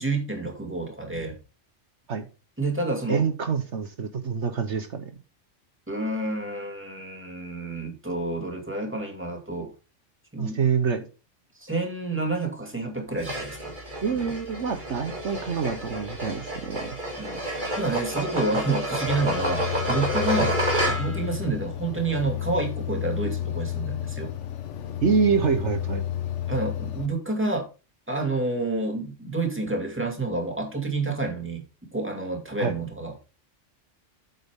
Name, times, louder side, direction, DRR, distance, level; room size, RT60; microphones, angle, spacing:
voice 1, 0.0-1.4 2.6-3.2 5.9-9.7 10.3-10.6 11.6-13.7 14.1-14.3 17.2-20.6 20.9-24.3 26.5-27.7 28.1-31.6 31.9-33.2, right 3 dB, 10° right, 2 dB, 2.3 m, -29 dB
voice 2, 3.1-5.1 10.4-11.1 14.0-17.0 20.4-20.5 25.0-26.0 32.6-32.7, right 6 dB, 70° right, 8 dB, 1.3 m, -26 dB
sound 1, 13.2-21.3, right 1 dB, 40° right, 2.8 m, -29 dB
sound 2, 19.1-27.1, left 11 dB, 75° left, 1.2 m, -31 dB
8.4 x 8.1 x 3.6 m, 0.32 s
omnidirectional pair, 1.3 m